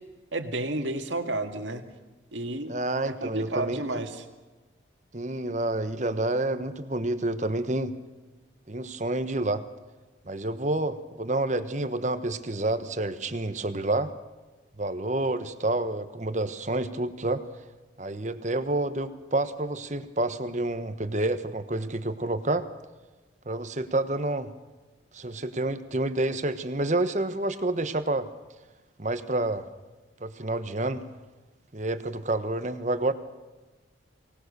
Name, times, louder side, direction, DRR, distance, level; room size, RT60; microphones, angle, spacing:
voice 1, 0.3-1.8 2.3-2.8 3.1-4.3, right 2 dB, 80° right, 6 dB, 2.0 m, -31 dB
voice 2, 2.7-3.8 5.1-8.0 8.7-9.6 10.2-14.1 14.8-17.4 18.0-22.7 23.4-24.5 25.1-28.3 29.0-29.6 30.2-31.0 31.7-33.1, right 2 dB, 40° right, 11 dB, 1.2 m, -28 dB
24.0 x 19.0 x 6.8 m, 1.2 s
head